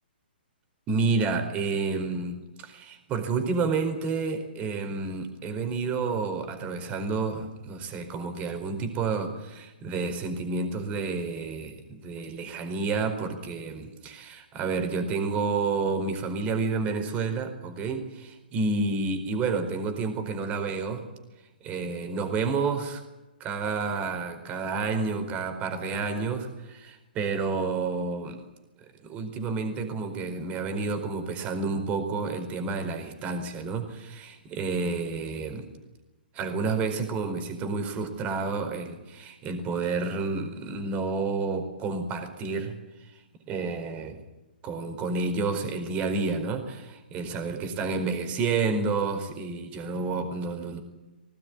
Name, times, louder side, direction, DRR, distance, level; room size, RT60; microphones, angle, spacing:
voice 1, 0.9-21.1 21.6-23.0 23.4-28.4 28.8-35.6 36.3-43.2 43.5-44.2 44.6-50.8, right 4 dB, 25° right, 7 dB, 4.5 m, -30 dB
21.5 x 18.0 x 9.8 m, 1.0 s
figure-of-eight pair, 125°, 6 cm